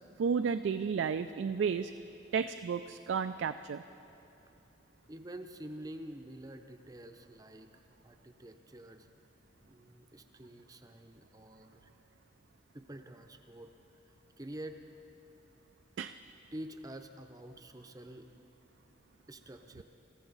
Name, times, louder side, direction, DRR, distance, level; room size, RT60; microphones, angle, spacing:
voice 1, 0.2-1.9 2.3-3.8 16.0-16.1, right 6 dB, 70° right, 10 dB, 0.3 m, -32 dB
voice 2, 5.1-9.1 9.6-11.9 12.7-13.7 14.0-14.8 16.5-18.3 19.3-19.8, right 1 dB, 20° right, 6 dB, 0.6 m, -48 dB
21.0 x 14.0 x 4.0 m, 3.0 s
head